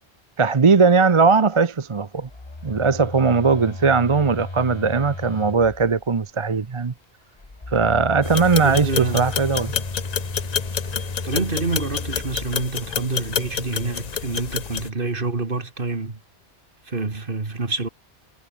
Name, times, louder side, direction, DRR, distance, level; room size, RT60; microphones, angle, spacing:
voice 1, 0.4-2.3 2.6-6.9 7.7-9.7, right 4 dB, 30° right, 0.7 m, -19 dB
Telephone, 2.2-6.2 7.4-13.1, left 2 dB, 25° left, 1.6 m, -34 dB
sound 1, 8.2-14.9, left 7 dB, 40° left, 0.7 m, -29 dB
voice 2, 8.6-9.3 11.2-16.2 16.9-17.9, right 3 dB, 50° right, 2.4 m, -27 dB
omnidirectional pair, 1.2 m